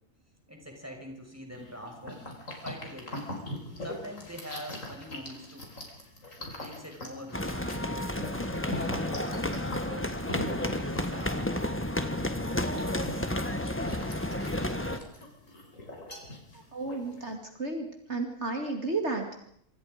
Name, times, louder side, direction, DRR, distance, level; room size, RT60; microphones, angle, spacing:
voice 1, 0.5-2.2 2.6-3.2 3.8-5.7 6.4-7.7 8.3-9.3 9.8-10.2 10.5-11.9, equal, 10° right, 2 dB, 5.6 m, -44 dB
sound 1, 1.5-17.3, left 1 dB, 70° left, 5.6 m, -42 dB
sound 2, 7.3-15.0, left 1 dB, 10° left, 1.5 m, -31 dB
voice 2, 16.7-19.3, right 3 dB, 55° right, 3 dB, 2.9 m, -33 dB
26.5 x 26.0 x 5.2 m, 0.69 s
omnidirectional pair, 1.4 m